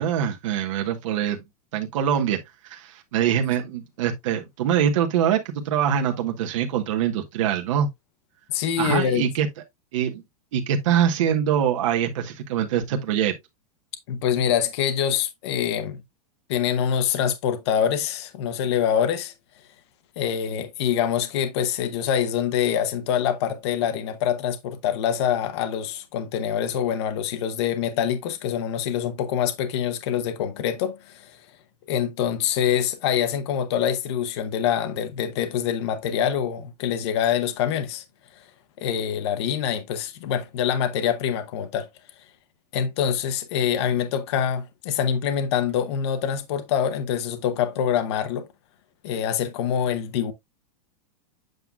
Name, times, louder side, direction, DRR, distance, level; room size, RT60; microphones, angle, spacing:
voice 1, 0.0-1.4 1.7-2.4 2.6-7.9 8.8-9.5 9.9-10.2 10.5-13.3, right 9 dB, 50° right, 1.3 m, -24 dB
voice 2, 8.5-9.3 14.1-16.0 16.5-19.3 20.2-31.4 31.9-38.0 38.8-41.9 42.7-48.5 49.0-50.3, left 9 dB, 40° left, 0.9 m, -25 dB
7.9 x 5.6 x 2.3 m
supercardioid pair, 175°, 20 cm